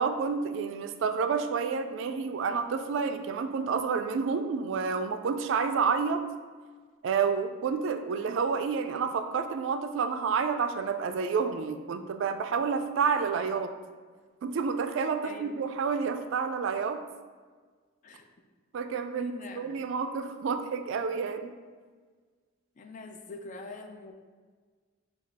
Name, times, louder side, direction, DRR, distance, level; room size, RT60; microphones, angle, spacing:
voice 1, 0.0-6.2 7.0-13.7 14.4-17.0 18.7-21.5, right 5 dB, 65° right, 8 dB, 0.3 m, -29 dB
voice 2, 15.2-15.6 18.0-18.3 19.2-19.8 22.8-24.1, left 3 dB, 40° left, 5 dB, 0.3 m, -44 dB
5.1 x 2.3 x 4.0 m, 1.5 s
head